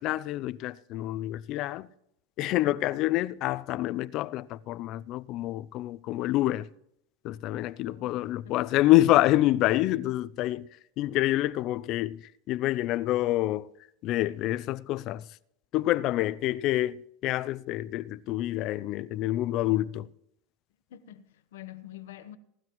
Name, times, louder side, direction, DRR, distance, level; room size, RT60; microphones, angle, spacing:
voice 1, 0.0-1.9 2.4-6.7 7.2-10.7 11.0-13.7 14.0-15.3 15.7-20.1, left 16 dB, 50° left, 0.4 m, -27 dB
voice 2, 7.8-8.6 20.9-22.4, left 13 dB, 80° left, 1.0 m, -47 dB
18.0 x 12.5 x 3.1 m
supercardioid pair, 120°, 0 cm